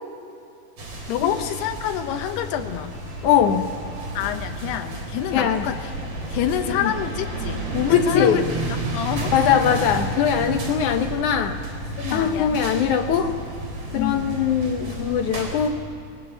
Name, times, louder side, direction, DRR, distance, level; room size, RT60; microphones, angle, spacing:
sound 1, 0.8-15.7, right 1 dB, 40° right, 4.3 m, -31 dB
voice 1, 1.1-3.0 4.1-5.9 6.3-8.5 8.8-9.8 12.0-12.9 13.9-14.4, left 10 dB, 90° left, 6 dB, 3.1 m, -27 dB
voice 2, 3.2-3.7 5.3-5.6 6.8-6.9 7.9-8.4 9.3-11.6 12.1-13.3 13.9-15.8, left 8 dB, 70° left, 6 dB, 1.9 m, -21 dB
25.0 x 18.5 x 8.9 m, 2.7 s
omnidirectional pair, 4.6 m